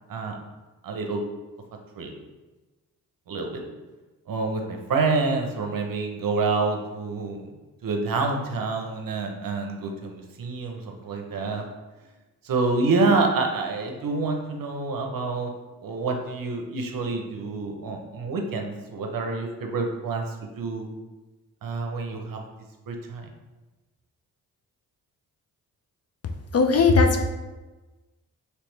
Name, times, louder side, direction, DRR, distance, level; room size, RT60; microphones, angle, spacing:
voice 1, 0.8-1.2 2.0-2.1 3.3-3.6 4.3-7.5 7.8-11.7 12.4-15.5 15.8-20.9 21.6-22.4 22.9-23.3, right 3 dB, 55° right, 3 dB, 0.7 m, -27 dB
voice 2, 26.5-27.2, left 4 dB, 40° left, 4 dB, 0.5 m, -18 dB
3.1 x 3.0 x 3.2 m, 1.2 s
supercardioid pair, 45°, 40 cm